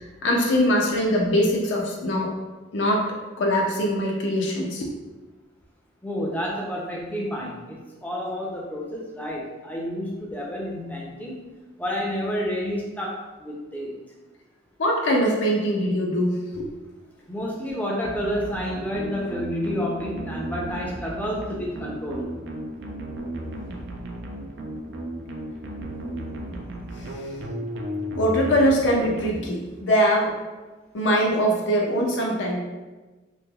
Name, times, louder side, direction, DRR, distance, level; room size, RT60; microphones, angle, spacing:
voice 1, 0.0-2.3 2.7-3.1 3.4-4.9 14.8-16.7 27.0-27.1 28.2-30.3 30.9-32.6, equal, 75° left, -2 dB, 0.5 m, -22 dB
voice 2, 6.0-11.4 11.8-13.9 17.3-22.3, equal, 10° left, -3 dB, 0.5 m, -30 dB
sound 1, 18.0-29.9, right 1 dB, 70° right, 0.4 m, -34 dB
3.2 x 2.8 x 2.3 m, 1.2 s
head